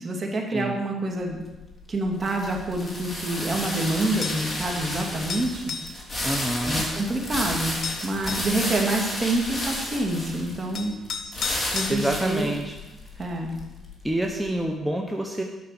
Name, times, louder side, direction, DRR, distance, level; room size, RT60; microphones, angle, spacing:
voice 1, 0.0-1.4 1.9-5.6 6.6-7.8 8.0-10.9 11.7-12.5 13.2-13.5, right 2 dB, 35° right, 1 dB, 2.5 m, -27 dB
sound 1, 1.2-14.5, left 1 dB, 15° left, 3.3 m, -32 dB
sound 2, 4.2-4.5 5.3-6.0 7.3-7.4 7.8-8.5 10.1-10.2 10.7-12.0, left 6 dB, 65° left, 1.1 m, -33 dB
voice 2, 6.2-6.8 11.9-12.8 14.0-15.4, right 1 dB, 5° right, 1 dB, 1.1 m, -27 dB
10.0 x 6.5 x 8.2 m, 1.1 s
cardioid pair, 90°, 0 cm